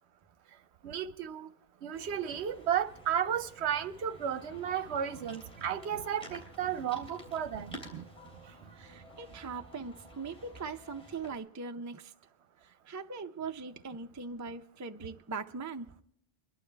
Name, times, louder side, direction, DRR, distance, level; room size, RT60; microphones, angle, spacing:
voice 1, 0.8-1.5 1.8-8.0, right 9 dB, 70° right, 0.9 m, -33 dB
sound 1, 1.9-11.4, equal, 5° left, 3.3 m, -51 dB
voice 2, 8.7-12.1 12.6-15.9, right 4 dB, 25° right, 0.4 m, -41 dB
23.0 x 11.5 x 3.3 m
omnidirectional pair, 1.2 m